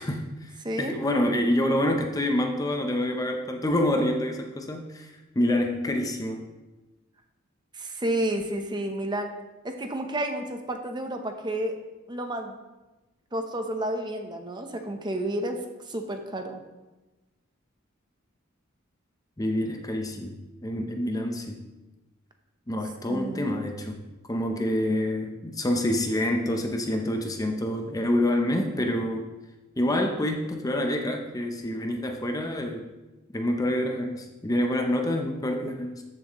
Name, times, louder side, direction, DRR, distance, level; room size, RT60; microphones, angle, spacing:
voice 1, 0.0-6.5 19.4-21.6 22.7-24.0 24.3-29.3 29.8-32.9 33.3-36.0, left 1 dB, 15° left, 4 dB, 0.7 m, -27 dB
voice 2, 0.6-1.0 7.7-9.3 9.6-11.7 12.1-12.5 13.3-15.6 15.9-16.6 23.1-23.5, right 1 dB, 20° right, 5 dB, 0.8 m, -31 dB
13.5 x 7.3 x 3.1 m, 1.1 s
head